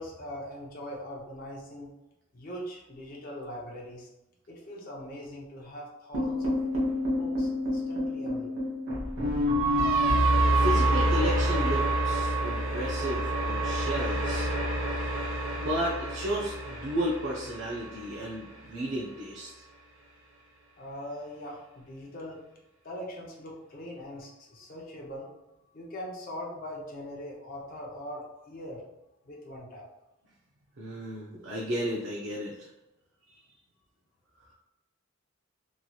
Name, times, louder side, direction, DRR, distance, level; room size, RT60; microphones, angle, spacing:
voice 1, 0.0-1.9 2.3-4.1 4.5-6.6 7.1-8.5 20.8-22.4 22.8-25.4 25.7-28.8 29.2-29.9, equal, 40° left, -3 dB, 0.5 m, -41 dB
sound 1, 6.1-18.3, right 1 dB, 80° right, 1.0 m, -27 dB
voice 2, 10.5-14.5 15.6-19.5 30.8-32.5, equal, 65° right, -3 dB, 0.5 m, -33 dB
3.0 x 2.7 x 2.2 m, 0.98 s
head